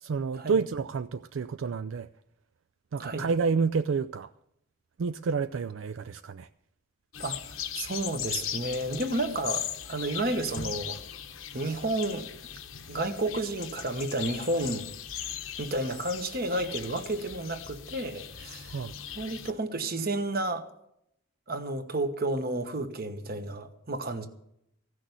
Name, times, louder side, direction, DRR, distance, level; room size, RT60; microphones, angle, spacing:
voice 1, 0.0-2.1 2.9-4.3 5.0-6.5 18.7-18.9, right 5 dB, 70° right, 0.4 m, -29 dB
sound 1, 7.1-19.5, left 9 dB, 80° left, 1.0 m, -39 dB
voice 2, 7.2-11.0 11.5-12.3 12.9-14.9 15.6-18.7 19.1-20.7 21.5-24.3, right 2 dB, 45° right, 1.2 m, -31 dB
15.5 x 6.4 x 9.3 m
head